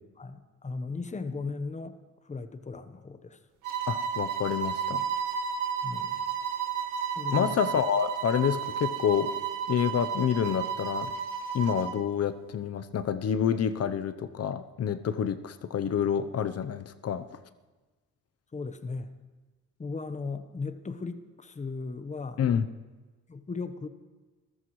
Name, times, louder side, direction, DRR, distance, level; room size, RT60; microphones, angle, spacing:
voice 1, 0.2-2.0 2.3-3.4 5.8-6.2 7.2-7.5 18.5-19.1 19.8-22.4 23.3-23.9, left 4 dB, 25° left, 10 dB, 1.0 m, -37 dB
sound 1, 3.6-12.0, right 7 dB, 90° right, 1.8 m, -32 dB
voice 2, 3.9-5.0 7.3-9.3 9.7-11.1 11.5-17.2 22.4-22.7, left 8 dB, 55° left, 11 dB, 0.8 m, -28 dB
26.0 x 14.5 x 3.2 m, 1.2 s
cardioid pair, 90°, 30 cm